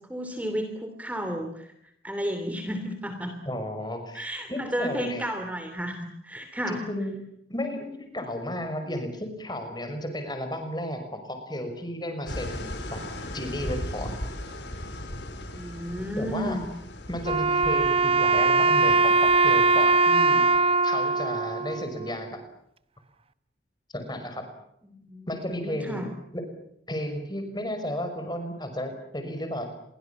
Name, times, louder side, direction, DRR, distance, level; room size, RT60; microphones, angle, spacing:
voice 1, 0.0-1.7 2.0-3.3 4.1-6.8 15.5-16.7 24.8-25.3 25.5-26.1, equal, 10° right, 6 dB, 3.1 m, -32 dB
voice 2, 3.5-5.3 6.7-7.2 7.5-13.0 13.3-14.1 16.2-16.6 17.1-20.5 20.8-22.4 23.9-24.5 25.3-26.4 26.9-29.7, left 1 dB, 25° left, 7 dB, 5.9 m, -33 dB
sound 1, 12.2-20.6, left 1 dB, 85° left, 5.6 m, -38 dB
Wind instrument woodwind instrument, 17.2-22.4, right 3 dB, 30° right, 1.1 m, -21 dB
29.5 x 23.5 x 7.2 m, 0.75 s
head